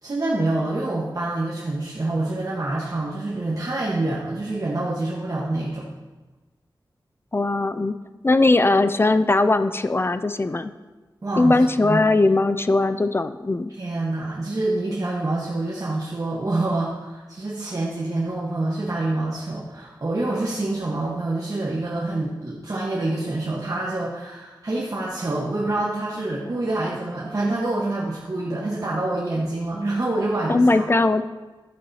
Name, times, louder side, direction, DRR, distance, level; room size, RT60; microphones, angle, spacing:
voice 1, 0.0-5.9 11.2-12.0 13.7-30.9, right 2 dB, 45° right, -5 dB, 1.3 m, -26 dB
voice 2, 7.3-7.9 8.2-10.7 11.4-13.7 30.5-31.2, left 2 dB, 30° left, 11 dB, 0.4 m, -19 dB
11.5 x 8.4 x 2.8 m, 1.2 s
wide cardioid pair, 65°, 8 cm